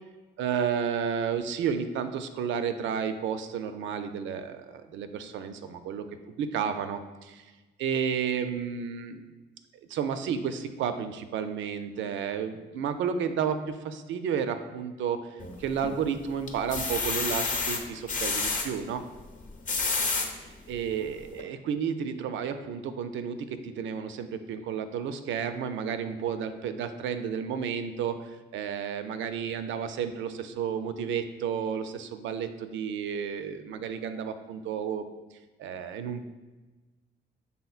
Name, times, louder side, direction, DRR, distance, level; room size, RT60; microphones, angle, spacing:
voice 1, 0.4-6.1 6.4-7.5 7.8-9.2 9.9-19.0 20.3-35.0 35.6-36.2, right 7 dB, 75° right, 9 dB, 0.4 m, -32 dB
sound 1, 15.4-16.0 16.5-18.7 19.4-20.3 20.9-21.0 21.3-21.4, left 4 dB, 40° left, 0.7 m, -29 dB
5.6 x 3.7 x 2.4 m, 1.2 s
cardioid pair, 90°, 20 cm